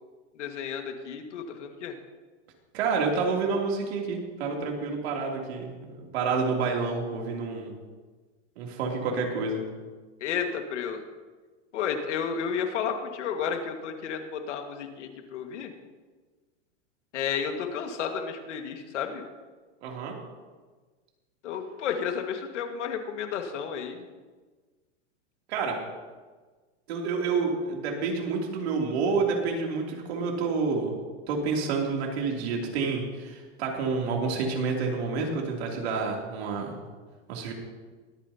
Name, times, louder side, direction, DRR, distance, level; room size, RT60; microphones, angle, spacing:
voice 1, 0.4-1.9 10.2-11.0 11.7-15.7 17.1-19.2 21.4-24.0, left 7 dB, 80° left, 5 dB, 1.9 m, -32 dB
voice 2, 2.7-7.7 8.6-9.6 19.8-20.2 25.5-25.8 26.9-30.9 31.3-36.8 37.3-37.5, right 4 dB, 60° right, 0 dB, 3.0 m, -29 dB
22.5 x 9.3 x 2.9 m, 1.4 s
supercardioid pair, 160°, 35 cm